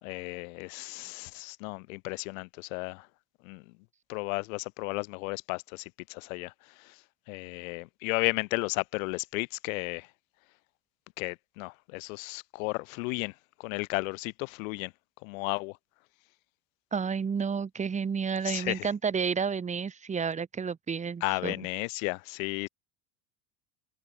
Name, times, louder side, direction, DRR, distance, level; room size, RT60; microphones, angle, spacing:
voice 1, 0.0-3.1 3.4-3.6 4.1-6.5 7.3-10.1 11.2-13.3 13.6-14.9 15.2-15.7 18.4-18.9 21.2-22.7, left 27 dB, 75° left, 4.6 m, -34 dB
voice 2, 16.9-21.6, right 6 dB, 15° right, 7.5 m, -31 dB
open air
cardioid pair, 170°, 41 cm